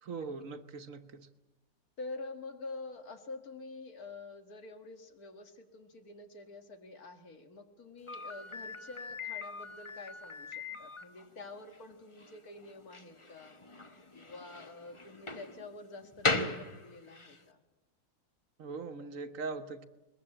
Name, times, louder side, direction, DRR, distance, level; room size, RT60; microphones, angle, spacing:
voice 1, 0.0-1.3 16.3-16.6 18.6-19.9, right 4 dB, 60° right, 8 dB, 1.4 m, -41 dB
voice 2, 2.0-13.5 14.1-17.6, left 3 dB, 70° left, 6 dB, 2.3 m, -47 dB
Slam, 8.1-17.4, left 3 dB, 25° left, 1.0 m, -39 dB
22.0 x 20.5 x 8.8 m, 1.1 s
omnidirectional pair, 1.6 m